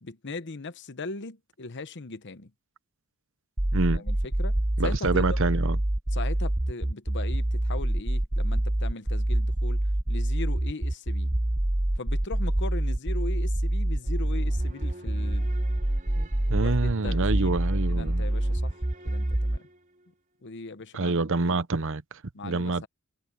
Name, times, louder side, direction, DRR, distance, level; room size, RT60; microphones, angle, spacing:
voice 1, 0.0-2.5 3.9-5.5 6.1-11.3 12.0-15.5 16.6-17.6 17.9-18.8 19.0-19.6 20.4-21.6 22.3-22.9, left 3 dB, 55° left, 1.0 m, -39 dB
sound 1, 3.6-19.6, right 1 dB, 15° right, 0.6 m, -26 dB
voice 2, 3.7-4.0 4.8-5.8 16.2-18.2 20.9-22.9, right 3 dB, 60° right, 0.9 m, -27 dB
sound 2, 14.0-20.1, right 1 dB, 35° right, 4.2 m, -48 dB
head